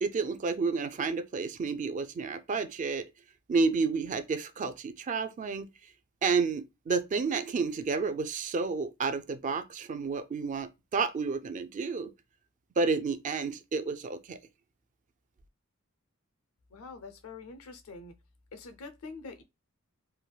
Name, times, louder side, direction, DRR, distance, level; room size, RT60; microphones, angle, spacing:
voice 1, 0.0-3.1 3.5-5.7 6.2-12.1 12.8-14.4, right 4 dB, 35° right, 0.3 m, -30 dB
voice 2, 16.7-18.2 18.5-19.4, left 4 dB, 80° left, 0.5 m, -45 dB
3.3 x 2.3 x 2.2 m
head